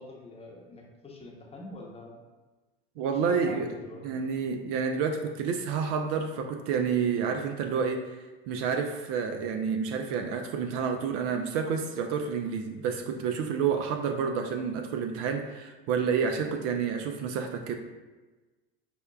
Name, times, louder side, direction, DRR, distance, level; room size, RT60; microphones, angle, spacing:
voice 1, 0.0-2.2 3.0-4.2, left 2 dB, 20° left, -1 dB, 0.8 m, -44 dB
voice 2, 3.0-3.7 4.0-8.0 8.5-17.7, right 6 dB, 55° right, 5 dB, 0.4 m, -29 dB
5.1 x 2.2 x 2.3 m, 1.2 s
hypercardioid pair, 85°, 29 cm